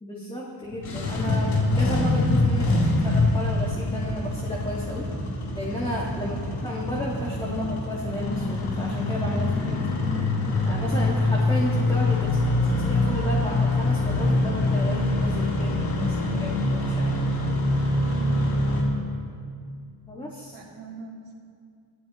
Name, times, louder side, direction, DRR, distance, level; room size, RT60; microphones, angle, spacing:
voice 1, 0.0-5.0 5.5-9.8 10.6-17.2 20.1-20.6, equal, 10° left, -5 dB, 2.1 m, -33 dB
Engine starting, 0.7-18.8, left 2 dB, 75° left, 4.0 m, -24 dB
voice 2, 18.0-18.5 20.5-21.3, right 5 dB, 60° right, -3 dB, 2.5 m, -40 dB
24.5 x 15.0 x 3.1 m, 2.3 s
cardioid pair, 100°, 50 cm